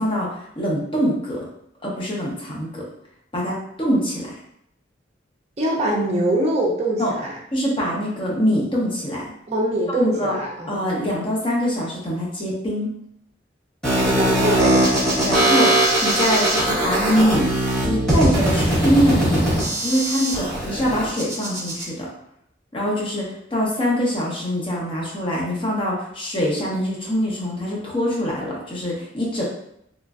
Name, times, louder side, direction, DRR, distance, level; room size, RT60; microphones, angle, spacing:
voice 1, 0.0-1.4 1.8-2.8 3.3-4.3 7.0-7.1 7.5-9.3 10.0-10.3 10.7-12.9 15.2-17.5 17.8-19.4 19.8-22.1 22.7-29.4, equal, 25° left, -4 dB, 0.7 m, -23 dB
voice 2, 5.6-7.4 9.5-10.7 14.2-14.9, right 1 dB, 35° right, -2 dB, 0.5 m, -23 dB
sound 1, 13.8-21.8, right 1 dB, ahead, 1.1 m, -20 dB
3.1 x 2.4 x 2.3 m, 0.74 s
head